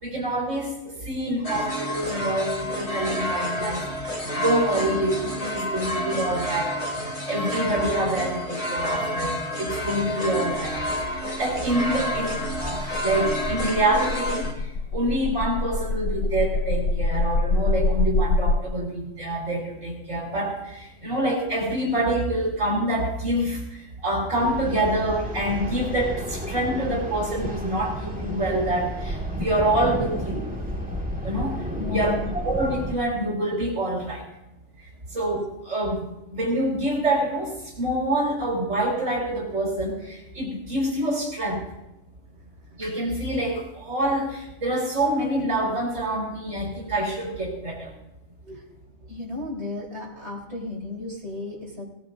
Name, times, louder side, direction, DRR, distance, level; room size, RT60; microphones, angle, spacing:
voice 1, 0.0-6.8 7.3-10.8 11.1-30.4 31.2-34.2 35.1-36.0 36.3-41.6 42.8-47.9, right 1 dB, 85° right, -3 dB, 4.0 m, -26 dB
sound 1, 1.4-14.5, equal, 30° left, 2.5 m, -29 dB
sound 2, 10.6-18.6, left 3 dB, 65° left, 0.8 m, -26 dB
sound 3, 24.4-33.0, equal, 5° right, 2.1 m, -32 dB
voice 2, 31.8-32.3 48.5-48.6 49.1-51.8, left 4 dB, 60° right, -4 dB, 4.4 m, -34 dB
19.5 x 18.5 x 2.7 m, 0.91 s
omnidirectional pair, 1.3 m